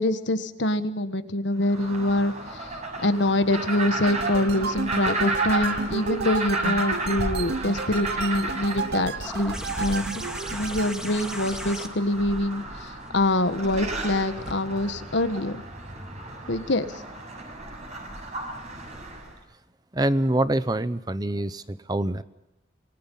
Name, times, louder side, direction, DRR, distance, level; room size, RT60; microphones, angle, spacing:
voice 1, 0.0-2.3 3.0-10.1 10.5-12.6 13.1-15.6 16.5-16.9, left 1 dB, 80° left, 10 dB, 1.6 m, -25 dB
sound 1, 1.6-19.3, right 2 dB, 40° right, 6.5 m, -33 dB
sound 2, 4.1-10.9, right 4 dB, 60° right, 0.8 m, -32 dB
sound 3, 9.2-14.5 15.9-16.0, equal, 5° right, 1.9 m, -38 dB
voice 2, 19.9-22.2, right 1 dB, 20° right, 14 dB, 0.8 m, -25 dB
28.0 x 20.0 x 5.7 m, 0.91 s
head